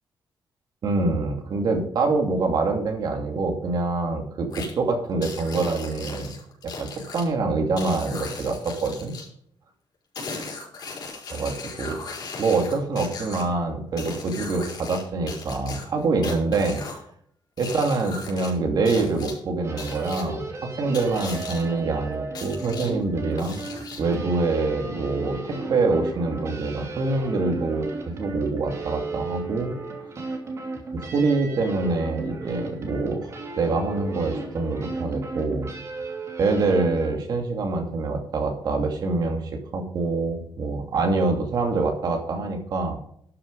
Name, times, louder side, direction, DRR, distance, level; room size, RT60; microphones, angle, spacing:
voice 1, 0.8-6.3 6.6-9.1 11.3-12.0 12.4-16.8 17.6-23.6 24.0-29.7 30.9-33.2 33.6-35.7 36.4-39.4 39.7-43.0, right 3 dB, 55° right, 3 dB, 2.5 m, -25 dB
sound 1, 4.5-4.7 5.2-7.2 7.8-9.3 10.1-13.4 14.0-15.0 15.3-17.0 17.6-18.5 18.8-19.3 19.8-20.2 20.9-21.6 22.3-22.9 23.4-24.1, left 4 dB, 55° left, 5.6 m, -37 dB
sound 2, 19.6-37.1, right 3 dB, 35° right, 2.6 m, -35 dB
12.5 x 7.3 x 5.4 m, 0.65 s
wide cardioid pair, 170°, 8 cm